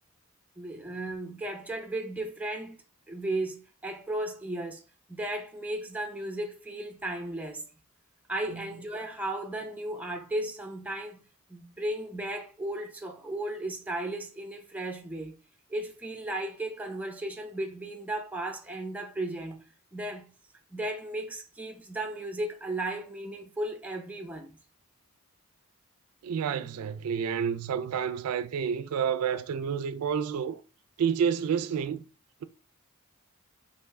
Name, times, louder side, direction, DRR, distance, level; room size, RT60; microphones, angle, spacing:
voice 1, 0.6-4.8 5.1-7.6 8.3-11.2 11.5-15.4 15.7-20.3 20.7-24.5, right 1 dB, 5° right, 0.5 m, -35 dB
voice 2, 26.2-30.6 31.0-32.0, right 7 dB, 90° right, 0.3 m, -29 dB
3.5 x 2.6 x 3.2 m
head